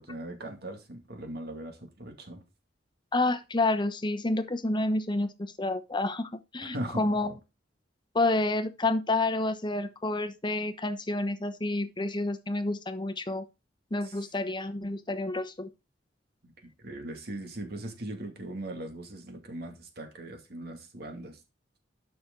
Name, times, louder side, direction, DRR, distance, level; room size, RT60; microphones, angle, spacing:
voice 1, 0.0-2.4 6.6-7.4 14.0-14.2 16.4-21.4, right 1 dB, 60° right, 2.4 m, -40 dB
voice 2, 3.1-7.3 8.1-13.4 13.9-15.7, left 2 dB, 25° left, 1.0 m, -29 dB
12.0 x 6.3 x 3.9 m
head